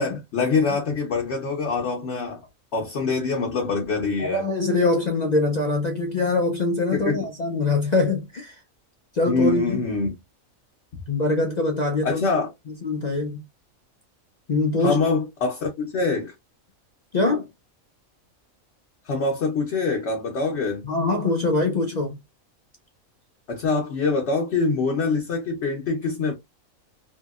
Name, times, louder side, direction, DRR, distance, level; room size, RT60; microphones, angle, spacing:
voice 1, 0.0-2.4 2.7-4.5 6.9-7.2 9.3-10.1 12.0-12.5 14.8-16.3 19.1-20.9 23.5-26.3, left 4 dB, 60° left, 0.9 m, -24 dB
voice 2, 4.2-8.6 9.1-9.8 11.1-12.2 12.8-13.4 14.5-15.0 17.1-17.5 20.8-22.2, left 2 dB, 75° left, 0.4 m, -23 dB
2.8 x 2.8 x 2.3 m
omnidirectional pair, 1.4 m